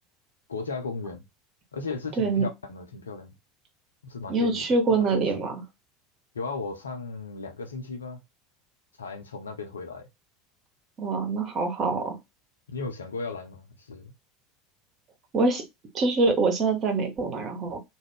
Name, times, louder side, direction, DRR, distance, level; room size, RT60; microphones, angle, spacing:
voice 1, 0.5-1.2 1.7-3.3 4.0-4.6 5.1-5.2 6.3-8.2 9.0-10.1 12.7-14.1, left 4 dB, 85° left, 0.5 m, -35 dB
voice 2, 4.3-5.6 11.0-12.2 15.3-15.6 15.9-17.8, right 3 dB, 40° right, 0.9 m, -24 dB
2.4 x 2.1 x 3.4 m
figure-of-eight pair, 75°, 0 cm